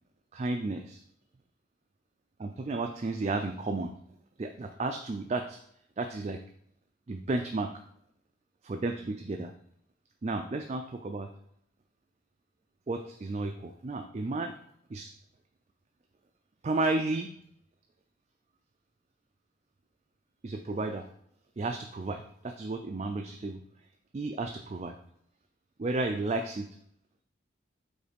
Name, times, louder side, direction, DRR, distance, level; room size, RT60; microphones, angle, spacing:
voice 1, 0.3-1.0 2.4-3.9 4.4-5.6 6.0-6.4 7.1-7.7 8.6-9.5 10.2-11.3 12.9-14.5 14.9-15.1 16.6-17.3 20.4-21.1 21.6-23.6 24.1-24.9 25.8-26.7, right 2 dB, 35° right, 5 dB, 0.3 m, -32 dB
5.3 x 3.9 x 5.1 m, 0.68 s
head